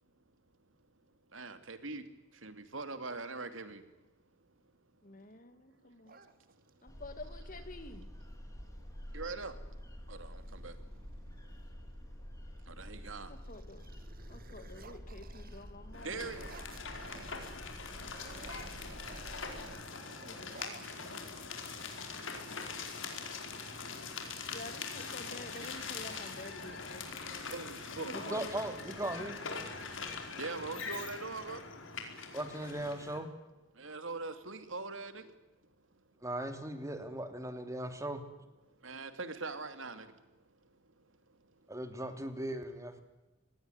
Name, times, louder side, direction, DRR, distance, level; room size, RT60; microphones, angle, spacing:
voice 1, 1.3-2.0 2.4-3.8 9.1-9.5 10.1-10.7 12.8-13.3 16.0-16.5 25.6-25.7 27.5-28.4 30.4-31.6 33.8-35.2 38.8-40.1, right 3 dB, 85° right, 9 dB, 2.8 m, -42 dB
voice 2, 5.0-6.2 6.8-8.1 13.3-13.8 14.3-16.3 20.2-20.5 24.5-27.1 28.0-28.5, left 2 dB, 45° left, 9 dB, 2.6 m, -49 dB
sound 1, 6.0-7.0 8.7-8.8 9.1-9.6 10.2-11.7 12.3-12.7 13.1-17.6 17.9-21.8, right 4 dB, 50° right, 2.1 m, -55 dB
sound 2, 6.9-19.7, equal, 15° left, 2.9 m, -48 dB
sound 3, 15.9-33.2, left 4 dB, 80° left, 4.9 m, -43 dB
voice 3, 28.1-29.4 32.3-33.3 36.2-38.2 41.7-43.0, right 1 dB, 15° right, 7 dB, 3.0 m, -38 dB
25.5 x 20.0 x 9.9 m, 1.0 s
head